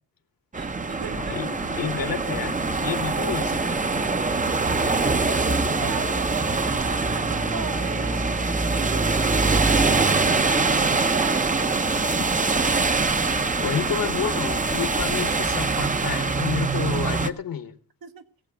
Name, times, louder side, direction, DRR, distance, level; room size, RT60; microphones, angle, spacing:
sound 1, 0.5-17.3, right 3 dB, 20° right, 0.6 m, -23 dB
voice 1, 0.5-1.4 5.3-12.0 18.0-18.2, right 7 dB, 70° right, 1.4 m, -38 dB
sound 2, 1.1-15.5, left 4 dB, 20° left, 0.5 m, -40 dB
voice 2, 1.3-2.5 2.8-3.8 13.6-17.7, left 8 dB, 65° left, 1.3 m, -30 dB
19.0 x 7.9 x 5.0 m
wide cardioid pair, 160°, 37 cm